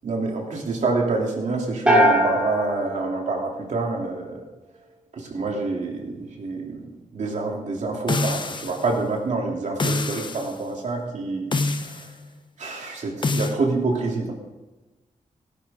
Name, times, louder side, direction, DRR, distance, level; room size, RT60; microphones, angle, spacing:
voice 1, 0.0-4.4 5.1-6.8 7.1-12.1 12.6-14.3, right 3 dB, 60° right, 0 dB, 3.1 m, -27 dB
sound 1, 1.9-4.1, equal, 5° right, 2.8 m, -22 dB
sound 2, 8.1-8.9 9.8-10.5 11.5-12.1 13.2-13.6, left 3 dB, 35° left, 0.9 m, -25 dB
17.0 x 10.0 x 3.8 m, 1.1 s
wide cardioid pair, 125°, 14 cm